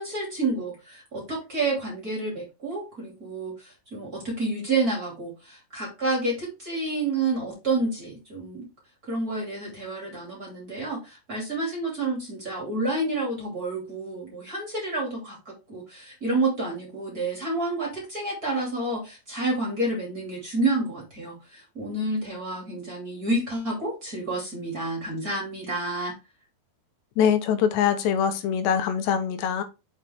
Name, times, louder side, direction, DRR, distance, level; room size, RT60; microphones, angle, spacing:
voice 1, 0.0-8.6 9.0-26.1, right 2 dB, 25° right, -2 dB, 2.5 m, -29 dB
voice 2, 27.2-29.6, left 8 dB, 90° left, 8 dB, 3.2 m, -23 dB
6.4 x 5.8 x 3.6 m, 0.27 s
omnidirectional pair, 4.9 m